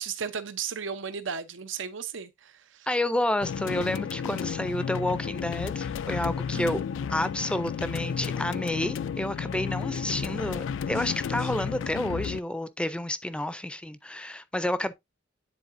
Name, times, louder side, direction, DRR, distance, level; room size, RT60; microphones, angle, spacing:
voice 1, 0.0-2.9 6.5-6.8, right 6 dB, 85° right, 0.7 m, -35 dB
voice 2, 2.9-6.8 7.1-14.9, left 1 dB, 5° left, 0.4 m, -30 dB
sound 1, 3.4-12.4, left 7 dB, 90° left, 0.3 m, -32 dB
9.8 x 3.9 x 2.5 m
head